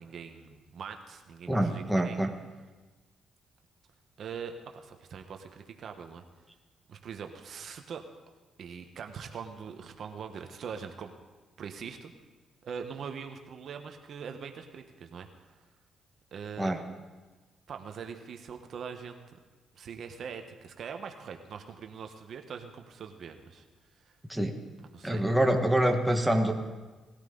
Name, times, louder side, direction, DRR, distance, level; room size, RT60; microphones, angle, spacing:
voice 1, 0.0-2.2 4.2-6.2 6.9-8.0 8.6-11.1 11.6-12.1 12.6-15.3 16.3-16.7 17.7-19.4 19.7-23.6 24.1-24.2 24.9-25.2, right 6 dB, 60° right, 5 dB, 1.1 m, -42 dB
voice 2, 1.5-2.3 16.6-16.8 24.3-24.5 25.0-26.5, right 1 dB, 5° right, 3 dB, 1.5 m, -26 dB
19.0 x 13.5 x 3.9 m, 1.3 s
cardioid pair, 90°, 0 cm